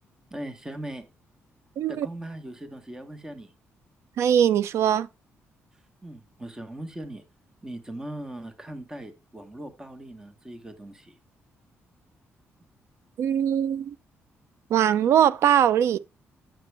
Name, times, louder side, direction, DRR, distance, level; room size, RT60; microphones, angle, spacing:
voice 1, 0.3-1.0 1.9-3.5 6.0-7.2 7.6-11.2, right 1 dB, 10° right, 1.1 m, -39 dB
voice 2, 1.8-2.1 4.2-5.1 13.2-13.9 14.7-16.0, right 9 dB, 75° right, 0.4 m, -21 dB
9.1 x 6.0 x 3.3 m
cardioid pair, 110°, 5 cm